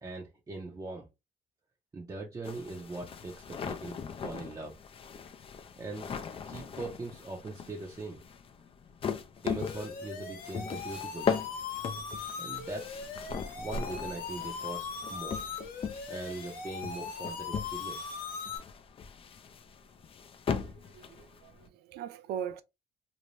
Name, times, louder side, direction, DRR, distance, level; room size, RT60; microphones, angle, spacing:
voice 1, 0.0-1.1 1.9-4.7 5.8-6.1 6.5-8.2 9.4-11.4 12.4-13.0 13.6-15.5 16.1-18.1, right 3 dB, 20° right, 0.6 m, -41 dB
sound 1, 2.4-21.7, left 6 dB, 35° left, 0.4 m, -39 dB
sound 2, 9.6-18.6, left 6 dB, 60° left, 0.9 m, -40 dB
voice 2, 20.6-22.6, right 9 dB, 70° right, 0.4 m, -40 dB
2.6 x 2.2 x 3.1 m
cardioid pair, 110°, 17 cm